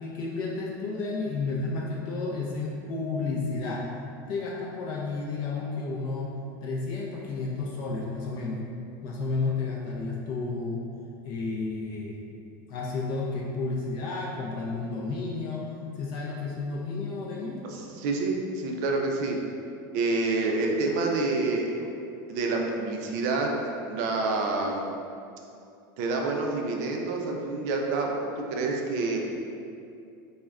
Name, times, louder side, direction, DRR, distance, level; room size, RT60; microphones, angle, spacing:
voice 1, 0.0-3.9 4.3-6.3 6.6-8.6 9.0-10.8 11.2-12.3 12.7-15.7 16.0-17.6, left 3 dB, 40° left, -4 dB, 0.3 m, -31 dB
voice 2, 17.6-19.4 19.9-21.9 22.3-23.5 23.9-24.9 26.0-29.2, right 3 dB, 60° right, 1 dB, 0.4 m, -28 dB
2.4 x 2.1 x 3.3 m, 2.5 s
supercardioid pair, 160°, 11 cm